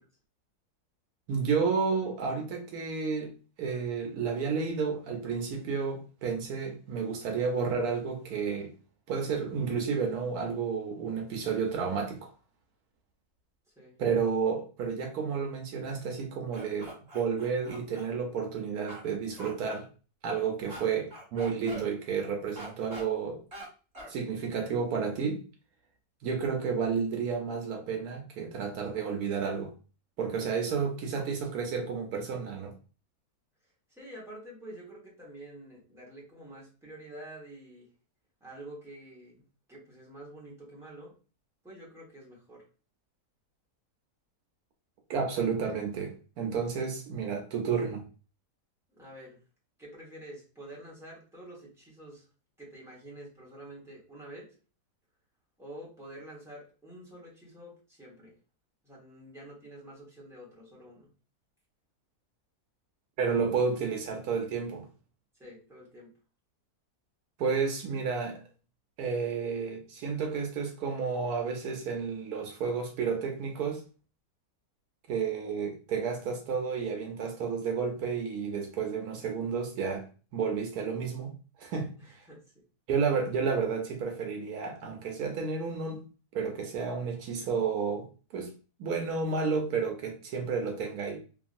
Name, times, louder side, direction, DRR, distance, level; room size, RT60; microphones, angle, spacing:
voice 1, 1.3-3.3 3.6-8.7 9.1-12.3 14.0-19.8 20.2-23.4 24.1-25.4 26.2-29.7 30.2-32.7 45.1-48.0 63.2-64.9 67.4-68.4 69.0-73.8 75.1-80.1 80.3-81.3 81.6-82.2 82.9-86.0 86.3-88.1 88.3-88.5 88.8-91.2, right 5 dB, 75° right, 1.1 m, -31 dB
sound 1, 16.5-18.1 18.9-19.0 19.4-19.5 20.7-20.8 21.1-21.8 22.6-23.0 23.5-23.7 23.9-24.1, right 1 dB, 25° right, 1.6 m, -43 dB
voice 2, 33.9-37.9 38.4-39.4 39.7-41.1 41.6-42.6 48.9-49.4 49.8-52.3 52.6-54.5 55.6-58.4 58.8-61.1 65.4-66.1 82.0-82.5, right 1 dB, ahead, 0.9 m, -48 dB
3.0 x 2.7 x 2.4 m
omnidirectional pair, 1.7 m